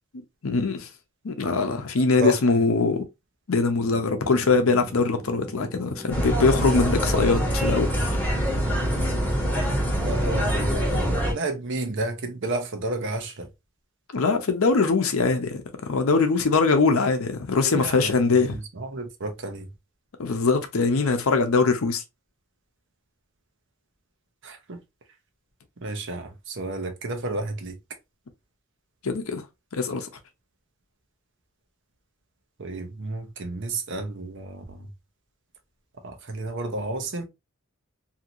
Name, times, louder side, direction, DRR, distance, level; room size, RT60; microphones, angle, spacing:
voice 1, 0.4-0.9 1.2-3.1 3.5-8.3 14.1-18.6 20.2-22.0 29.0-29.4 29.7-30.1, left 4 dB, 85° left, 0.6 m, -22 dB
voice 2, 2.1-2.6 9.9-13.5 17.6-19.7 24.4-24.8 25.8-27.8 32.6-34.9 36.0-37.3, right 2 dB, 60° right, 0.7 m, -31 dB
sound 1, 3.7-9.5, right 1 dB, 10° right, 0.6 m, -41 dB
sound 2, 6.1-11.3, equal, 10° left, 1.2 m, -24 dB
2.8 x 2.5 x 2.7 m
head